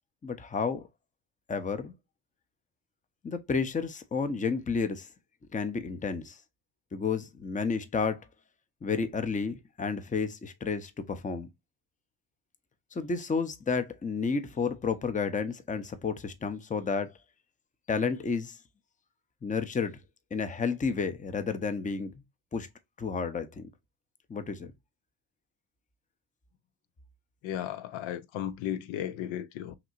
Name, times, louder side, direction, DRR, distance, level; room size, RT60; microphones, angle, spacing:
voice 1, 0.2-0.8 1.5-1.9 3.2-5.1 5.5-6.4 6.9-8.2 8.8-11.5 12.9-17.1 17.9-18.6 19.4-20.0 20.3-22.1 22.5-22.7 23.0-23.7 24.3-24.7, left 5 dB, 15° left, 0.7 m, -31 dB
voice 2, 27.4-29.8, left 11 dB, 70° left, 0.7 m, -35 dB
5.9 x 2.8 x 2.5 m
cardioid pair, 90°, 48 cm